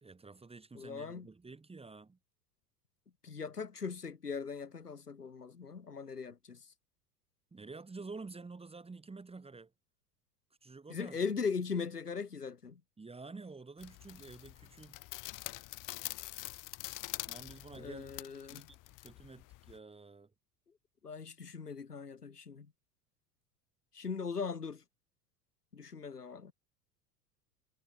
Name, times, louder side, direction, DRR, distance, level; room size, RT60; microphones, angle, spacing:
voice 1, 0.0-2.2 7.5-9.7 10.6-11.2 13.0-15.1 17.3-18.1 18.5-20.3, right 3 dB, 15° right, 3.2 m, -49 dB
voice 2, 0.7-1.3 3.2-6.7 10.9-12.8 17.8-18.7 21.0-22.7 23.9-24.8 25.7-26.5, left 5 dB, 90° left, 1.1 m, -39 dB
sound 1, 13.8-19.8, left 19 dB, 45° left, 2.4 m, -45 dB
figure-of-eight pair, 80°, 45 cm